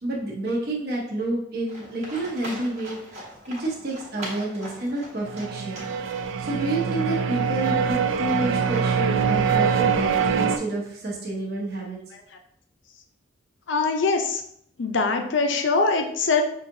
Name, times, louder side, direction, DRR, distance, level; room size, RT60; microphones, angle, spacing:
voice 1, 0.0-5.9 6.4-12.0, right 2 dB, 50° right, -3 dB, 0.9 m, -29 dB
Livestock farm animals working animals, 1.7-6.6, right 1 dB, 35° right, 1.1 m, -40 dB
sound 1, 5.3-10.6, right 6 dB, 75° right, 0.3 m, -23 dB
voice 2, 13.7-14.4 14.8-16.4, left 4 dB, 70° left, 4 dB, 0.5 m, -22 dB
5.6 x 2.7 x 2.6 m, 0.69 s
head